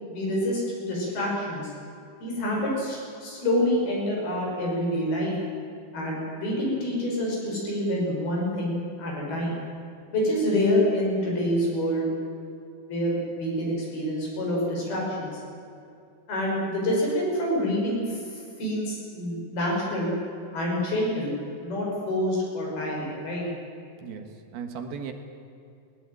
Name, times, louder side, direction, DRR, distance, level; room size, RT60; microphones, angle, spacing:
voice 1, 0.1-1.7 2.2-5.3 5.9-9.6 10.1-12.1 12.9-15.4 16.3-20.1 20.5-21.4 21.6-23.4, left 1 dB, 65° left, -3 dB, 8.2 m, -27 dB
voice 2, 24.0-25.1, right 6 dB, 70° right, 6 dB, 3.2 m, -37 dB
20.0 x 19.5 x 9.3 m, 2.6 s
omnidirectional pair, 4.8 m